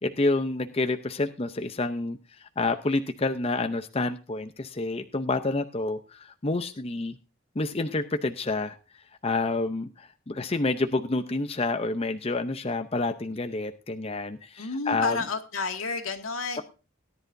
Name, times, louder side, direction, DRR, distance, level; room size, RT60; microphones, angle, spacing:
voice 1, 0.0-2.2 2.6-7.2 7.6-8.8 9.2-15.2, left 2 dB, 30° left, 8 dB, 0.6 m, -28 dB
voice 2, 14.6-16.6, left 4 dB, 90° left, 4 dB, 2.0 m, -30 dB
18.0 x 10.5 x 2.6 m, 0.31 s
head